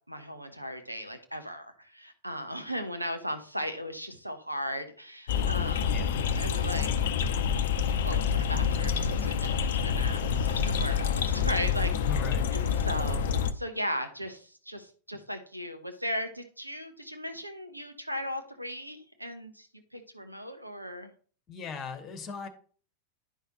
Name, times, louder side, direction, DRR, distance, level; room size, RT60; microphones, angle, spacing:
voice 1, 0.1-5.9 6.3-6.9 7.2-7.3 8.0-11.9 12.5-19.7 19.9-21.1, equal, 85° right, 7 dB, 0.9 m, -37 dB
sound 1, 5.3-13.5, left 7 dB, 55° left, 0.6 m, -27 dB
voice 2, 5.9-6.2 11.9-12.5 21.5-22.5, left 5 dB, 30° left, 10 dB, 1.2 m, -38 dB
10.0 x 5.6 x 3.0 m, 0.43 s
figure-of-eight pair, 90°, 0 cm